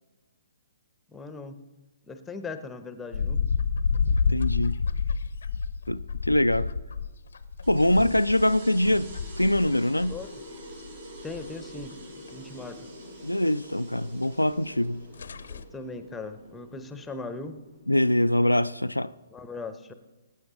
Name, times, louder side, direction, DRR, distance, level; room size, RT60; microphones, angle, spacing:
voice 1, 1.1-1.6 2.1-3.4 10.1-10.4 11.2-12.0 12.3-12.9 15.5-17.6 19.3-19.9, left 3 dB, 5° left, 0.9 m, -39 dB
sound 1, 3.1-10.3 10.6-11.5 11.8-11.9 12.3-12.4 14.4-14.5 14.8-14.9 15.1-15.6, left 5 dB, 60° left, 0.7 m, -29 dB
voice 2, 4.3-4.8 5.9-6.7 7.7-9.1 9.4-10.2 13.2-15.0 17.9-19.1, left 1 dB, 85° left, 0.3 m, -23 dB
sound 2, 7.6-18.6, equal, 55° right, 5.4 m, -46 dB
20.0 x 9.4 x 3.8 m
figure-of-eight pair, 125°, 0 cm